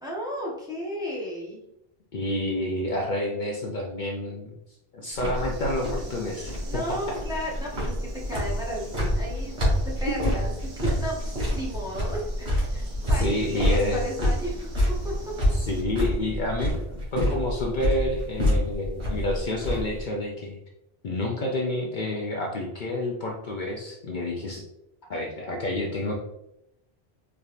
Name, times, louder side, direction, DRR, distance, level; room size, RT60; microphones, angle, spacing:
voice 1, 0.0-1.6 6.7-7.9 8.2-9.6 10.0-10.5 10.8-14.7 15.0-15.1, equal, 5° right, -4 dB, 0.8 m, -34 dB
voice 2, 2.1-4.5 4.9-6.8 10.2-10.3 13.1-14.0 15.5-20.6 21.0-24.6 25.1-26.1, left 1 dB, 55° left, -1 dB, 0.7 m, -29 dB
sound 1, 5.1-20.0, equal, 55° right, 1.6 m, -27 dB
sound 2, 5.3-15.8, right 3 dB, 80° right, 1.1 m, -46 dB
4.1 x 3.4 x 2.4 m, 0.84 s
omnidirectional pair, 1.0 m